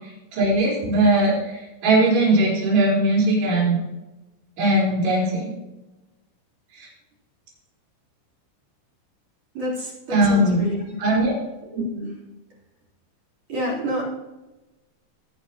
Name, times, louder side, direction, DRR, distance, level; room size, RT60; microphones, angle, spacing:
voice 1, 0.3-3.8 4.6-5.6 10.1-10.6 11.0-11.4, right 1 dB, 60° right, -5 dB, 6.4 m, -19 dB
voice 2, 9.5-10.8 11.7-12.1 13.5-14.0, equal, 45° right, -2 dB, 4.6 m, -28 dB
20.5 x 9.5 x 2.9 m, 1.1 s
omnidirectional pair, 5.6 m